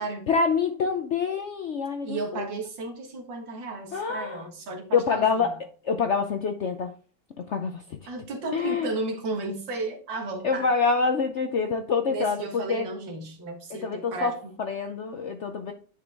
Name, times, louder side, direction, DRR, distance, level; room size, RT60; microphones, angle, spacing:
voice 1, 0.3-2.5 3.9-4.5 4.9-6.9 7.4-8.0 8.5-8.9 10.4-12.9 13.7-15.7, left 5 dB, 65° left, 0.7 m, -26 dB
voice 2, 2.0-5.6 8.1-10.7 12.1-14.5, right 3 dB, 90° right, 2.2 m, -34 dB
9.9 x 4.8 x 3.4 m
omnidirectional pair, 1.9 m